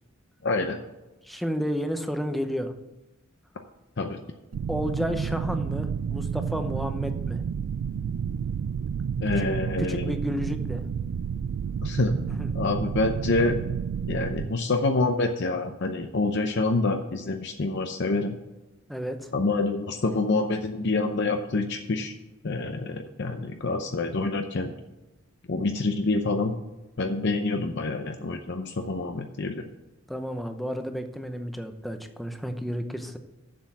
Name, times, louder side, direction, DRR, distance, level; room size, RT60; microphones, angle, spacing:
voice 1, 0.4-0.8 4.0-4.2 9.2-10.1 11.8-12.1 12.5-13.6 14.1-18.4 19.3-22.1 22.4-24.7 25.5-26.5 27.0-29.7, left 3 dB, 55° left, 5 dB, 0.6 m, -27 dB
voice 2, 1.2-2.7 4.7-7.4 9.4-9.5 9.8-10.8 12.3-12.5 18.9-19.2 30.1-33.2, equal, ahead, 7 dB, 0.7 m, -31 dB
sound 1, 4.5-14.5, right 7 dB, 75° right, 0.3 m, -30 dB
7.4 x 6.8 x 7.1 m, 1.0 s
head